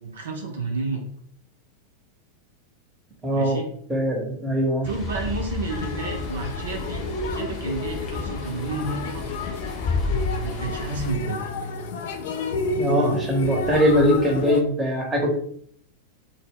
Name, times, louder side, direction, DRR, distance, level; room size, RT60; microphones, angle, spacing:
voice 1, 0.0-1.0 3.3-3.7 4.4-4.5 4.8-7.0 7.3-9.2 10.4-11.4, right 3 dB, 65° right, 1 dB, 0.5 m, -31 dB
voice 2, 3.2-3.6 3.9-4.9 12.8-15.4, equal, 15° right, 1 dB, 0.7 m, -21 dB
sound 1, 4.8-11.1, left 3 dB, 25° left, 0.8 m, -31 dB
sound 2, 5.7-14.6, left 3 dB, 55° left, 0.3 m, -30 dB
2.0 x 2.0 x 3.6 m, 0.63 s
figure-of-eight pair, 90°, 0 cm